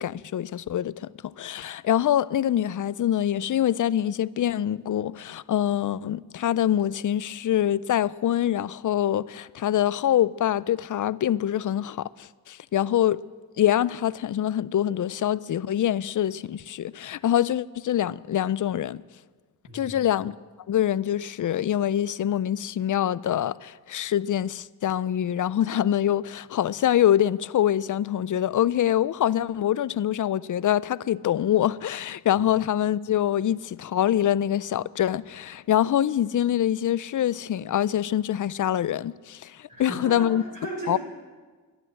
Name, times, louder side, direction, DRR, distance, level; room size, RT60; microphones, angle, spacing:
voice 1, 0.0-13.2 13.6-19.0 19.7-20.3 20.7-40.4 40.9-41.0, left 11 dB, 50° left, 0.5 m, -25 dB
voice 2, 19.7-20.0 32.4-32.5 39.7-41.0, right 2 dB, 50° right, 5.8 m, -36 dB
12.0 x 11.0 x 7.6 m
cardioid pair, 45°, 41 cm